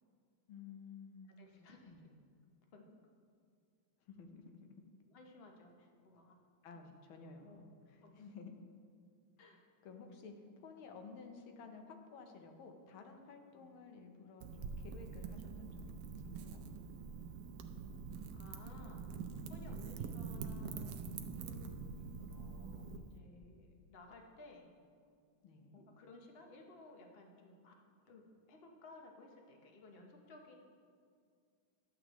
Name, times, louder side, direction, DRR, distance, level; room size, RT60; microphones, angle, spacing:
voice 1, 0.5-2.1 4.0-4.4 4.7-4.8 6.6-8.6 9.8-10.3 10.6-16.6 25.4-25.9, left 5 dB, 80° left, 4 dB, 1.7 m, -54 dB
voice 2, 1.4-1.9 2.7-3.0 5.1-5.7 6.0-6.3 6.7-6.8 7.4-7.6 8.0-8.1 9.4-9.6 13.6-13.7 18.3-19.2 19.5-24.7 25.7-30.6, left 3 dB, 50° left, 2 dB, 0.7 m, -58 dB
Wind / Fire, 14.4-23.0, right 5 dB, 85° right, 0.8 m, -45 dB
12.0 x 8.1 x 3.0 m, 2.2 s
omnidirectional pair, 2.2 m